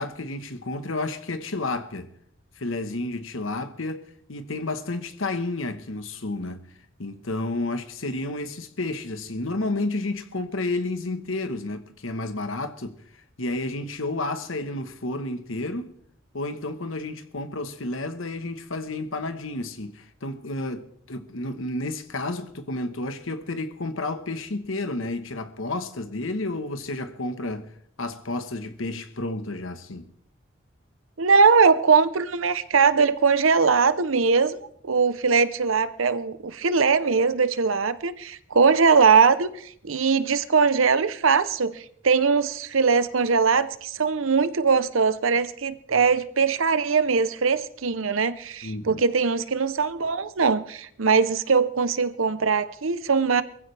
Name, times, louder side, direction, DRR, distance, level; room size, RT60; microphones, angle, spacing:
voice 1, 0.0-2.1 2.6-6.7 7.0-13.0 13.4-15.9 16.3-27.7 28.0-30.1 48.6-49.0, left 2 dB, 90° left, 1.3 m, -31 dB
voice 2, 31.2-34.6 34.8-53.4, right 5 dB, 90° right, 0.8 m, -21 dB
22.5 x 15.0 x 3.4 m
head